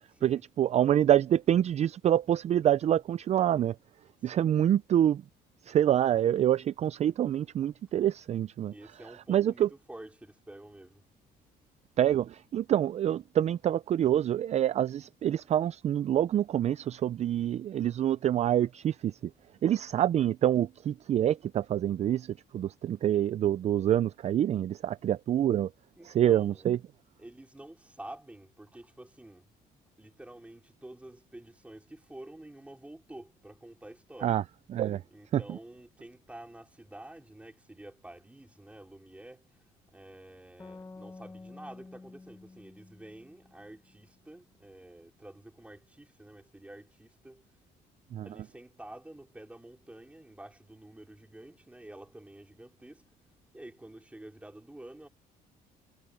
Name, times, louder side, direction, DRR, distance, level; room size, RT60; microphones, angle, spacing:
voice 1, 0.2-3.8 4.2-5.2 5.6-8.7 9.3-9.7 12.0-19.3 19.6-25.7 26.0-26.8 34.2-34.4 34.7-35.0 35.3-35.4 48.1-48.3, right 11 dB, 40° right, 0.4 m, -26 dB
voice 2, 8.7-11.0 26.0-26.7 27.2-29.5 30.0-34.4 35.1-39.6 39.9-47.5 48.2-53.0 53.5-55.1, right 1 dB, 5° right, 4.6 m, -49 dB
sound 1, 40.6-44.1, left 3 dB, 15° left, 1.4 m, -50 dB
cardioid pair, 110°, 17 cm